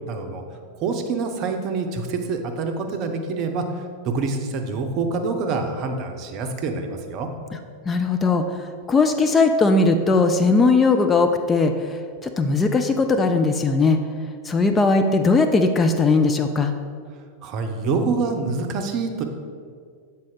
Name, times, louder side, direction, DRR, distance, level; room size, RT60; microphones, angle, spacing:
voice 1, 0.1-0.4 0.8-3.6 4.0-7.3 17.4-19.2, right 4 dB, 40° right, 5 dB, 0.7 m, -26 dB
voice 2, 7.9-8.4 8.9-14.0 14.5-16.7, left 3 dB, 20° left, 6 dB, 0.3 m, -19 dB
7.5 x 4.1 x 3.8 m, 2.1 s
figure-of-eight pair, 90°, 0 cm